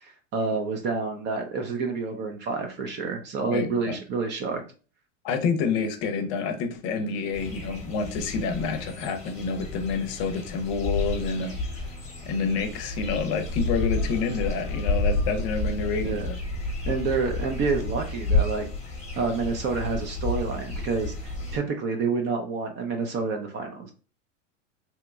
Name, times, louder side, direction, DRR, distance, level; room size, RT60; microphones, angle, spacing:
voice 1, 0.0-4.6 16.0-16.3 16.9-18.7 19.2-23.9, right 4 dB, 30° right, 0.5 m, -28 dB
voice 2, 3.4-4.0 5.2-11.8 12.3-16.4, left 5 dB, 45° left, 0.7 m, -28 dB
sound 1, 7.3-21.6, left 2 dB, 15° left, 0.9 m, -30 dB
3.0 x 2.1 x 3.5 m
hypercardioid pair, 120°, 39 cm